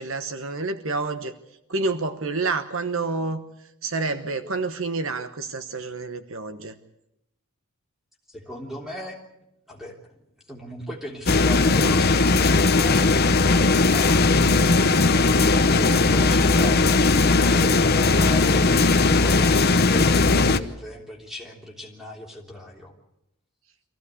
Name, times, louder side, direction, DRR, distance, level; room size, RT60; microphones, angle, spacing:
voice 1, 0.0-1.3 1.7-3.4 3.8-6.7, right 3 dB, 65° right, 9 dB, 1.1 m, -28 dB
voice 2, 8.3-9.2 9.7-10.0 10.5-14.3 15.1-22.9, left 1 dB, ahead, 0 dB, 3.3 m, -38 dB
sound 1, 11.3-20.6, left 3 dB, 45° left, 0.9 m, -18 dB
24.5 x 15.5 x 8.4 m, 0.85 s
head